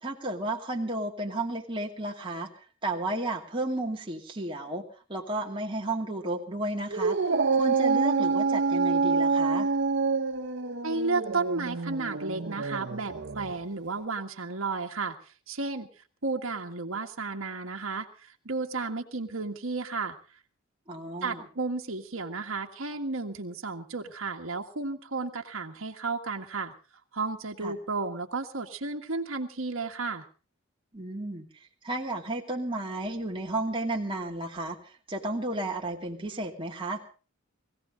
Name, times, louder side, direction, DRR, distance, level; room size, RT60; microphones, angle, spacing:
voice 1, 0.0-2.5 2.8-4.8 5.1-7.2 7.5-9.7 20.9-21.5 27.6-27.7 30.9-31.5 31.8-37.0, right 2 dB, 25° right, -1 dB, 2.6 m, -33 dB
Dog, 6.9-13.5, right 4 dB, 60° right, 0.9 m, -27 dB
voice 2, 10.8-15.9 16.2-20.2 21.2-26.7 27.1-30.3, right 3 dB, 75° right, 2 dB, 1.7 m, -33 dB
20.5 x 16.5 x 3.8 m, 0.37 s
head